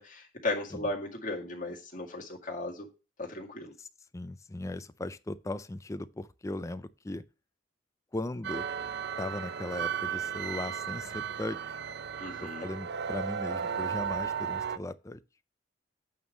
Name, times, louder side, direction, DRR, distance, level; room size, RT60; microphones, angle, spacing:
voice 1, 0.0-2.9 3.2-3.7 12.2-12.7, left 2 dB, 45° left, 2.1 m, -36 dB
voice 2, 4.1-7.2 8.1-8.7 9.2-11.8 12.4-15.2, left 1 dB, 15° left, 0.4 m, -38 dB
sound 1, 8.4-14.8, right 7 dB, 60° right, 0.5 m, -35 dB
8.7 x 3.7 x 6.2 m
head